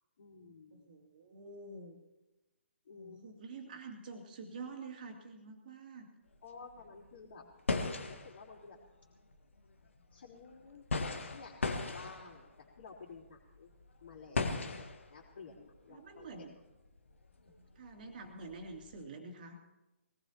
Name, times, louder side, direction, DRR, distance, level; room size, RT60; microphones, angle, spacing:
voice 1, 0.2-0.9 2.9-3.2 6.4-8.8 10.1-10.8 11.2-12.5 12.8-13.7 14.0-16.5 17.4-17.5, left 4 dB, 45° left, -7 dB, 3.4 m, -53 dB
voice 2, 0.7-2.0 2.9-6.1 7.4-7.5 14.6-14.8 15.9-16.5 17.8-19.6, right 3 dB, 40° right, 3 dB, 2.6 m, -48 dB
sound 1, 6.3-6.4 6.7-19.0, left 3 dB, 65° left, 1.6 m, -39 dB
23.0 x 18.5 x 3.0 m, 0.99 s
figure-of-eight pair, 135°, 7 cm